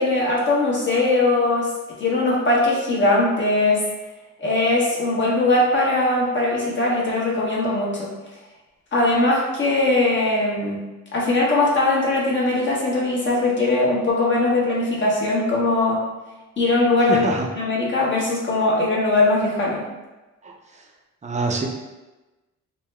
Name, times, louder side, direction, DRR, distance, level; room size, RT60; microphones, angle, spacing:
voice 1, 0.0-1.7 2.0-3.8 4.4-8.1 8.9-10.8 11.1-16.0 16.6-17.2 17.6-19.8, left 2 dB, 40° left, -5 dB, 1.2 m, -20 dB
voice 2, 17.1-17.5 20.4-20.6 21.2-21.7, right 3 dB, 25° right, 0 dB, 0.6 m, -24 dB
3.6 x 2.2 x 3.3 m, 1.1 s
cardioid pair, 90°, 30 cm